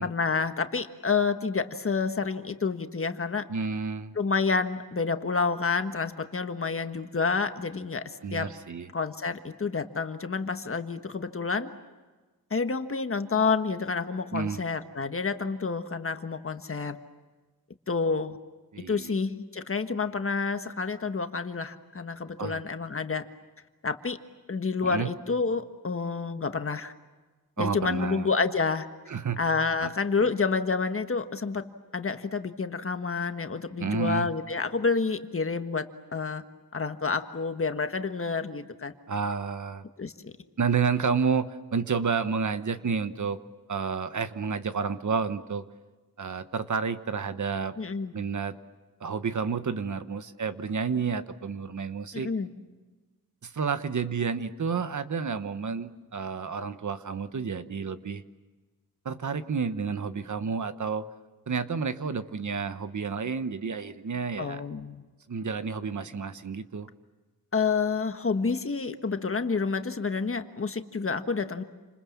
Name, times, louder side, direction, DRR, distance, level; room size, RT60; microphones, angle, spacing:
voice 1, 0.0-3.4 4.1-8.5 8.9-11.7 12.5-17.0 17.9-18.4 18.8-23.2 23.8-24.2 24.5-26.9 27.6-28.9 29.4-31.6 31.9-35.8 36.1-36.4 36.7-38.9 40.0-40.3 47.8-48.1 52.1-52.5 64.4-65.0 67.5-71.6, left 4 dB, 35° left, 8 dB, 1.5 m, -29 dB
voice 2, 3.5-4.1 8.2-8.9 14.3-14.6 18.7-19.1 22.4-22.6 24.8-25.1 27.6-28.3 29.1-29.4 29.8-29.9 30.2-30.3 33.8-34.3 39.1-39.8 40.6-43.4 43.7-45.6 46.2-47.7 48.1-48.6 49.0-52.3 53.4-58.2 59.0-61.1 61.5-64.6 65.3-66.9, right 5 dB, 50° right, 11 dB, 1.2 m, -30 dB
29.5 x 27.0 x 7.4 m, 1.3 s
wide cardioid pair, 160°, 37 cm